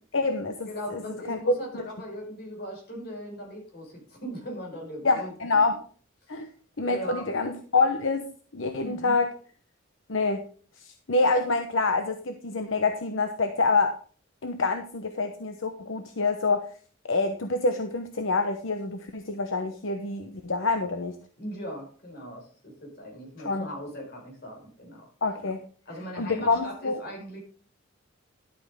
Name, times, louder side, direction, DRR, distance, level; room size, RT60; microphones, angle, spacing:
voice 1, 0.1-1.0 1.3-1.8 5.0-5.8 6.3-6.5 6.8-9.3 10.1-10.4 10.8-13.9 14.4-16.7 17.0-21.2 23.4-23.7 25.2-25.6 26.2-27.0, left 3 dB, 75° left, 6 dB, 1.0 m, -26 dB
voice 2, 0.7-5.6 6.3-6.4 6.8-7.3 8.8-9.2 21.4-25.1 25.9-27.4, equal, 50° left, 0 dB, 5.3 m, -39 dB
12.0 x 8.5 x 3.7 m, 0.43 s
head